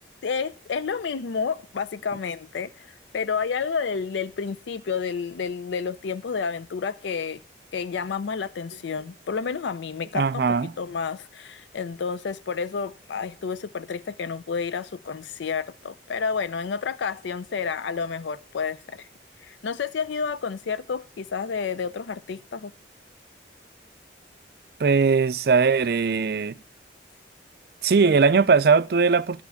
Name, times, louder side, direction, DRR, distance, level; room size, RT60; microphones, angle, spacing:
voice 1, 0.2-7.4 7.7-19.1 19.4-22.7, left 5 dB, 80° left, 0.4 m, -30 dB
voice 2, 10.1-10.7 24.8-26.5 27.8-29.4, right 5 dB, 55° right, 0.4 m, -20 dB
13.0 x 4.4 x 7.0 m
head